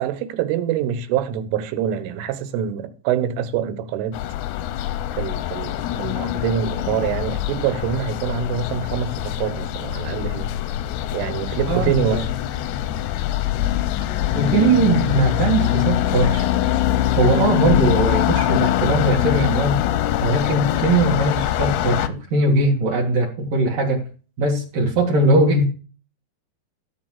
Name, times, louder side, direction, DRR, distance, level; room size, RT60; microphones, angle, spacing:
voice 1, 0.0-4.2 5.2-10.5 11.1-12.3, right 9 dB, 85° right, 3.7 m, -25 dB
sound 1, 4.1-22.1, left 13 dB, 80° left, 2.4 m, -23 dB
voice 2, 11.7-12.3 14.3-16.5 17.2-19.8 20.2-24.1 24.4-25.6, right 2 dB, 55° right, 2.7 m, -20 dB
13.5 x 5.4 x 7.4 m
omnidirectional pair, 5.6 m